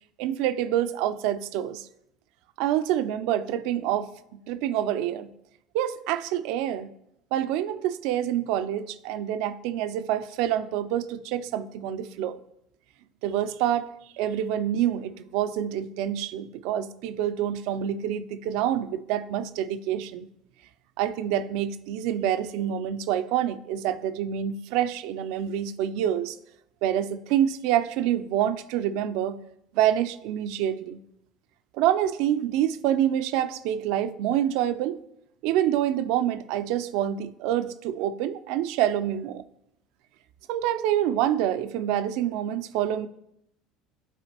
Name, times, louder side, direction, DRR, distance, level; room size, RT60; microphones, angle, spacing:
voice 1, 0.2-1.9 2.6-5.3 5.7-6.9 7.3-12.4 13.2-20.3 21.0-26.4 26.8-29.4 29.7-31.0 31.7-35.0 35.4-39.4 40.5-43.1, right 11 dB, 65° right, 0.4 m, -27 dB
11.5 x 4.2 x 2.9 m
hypercardioid pair, 70°, 0 cm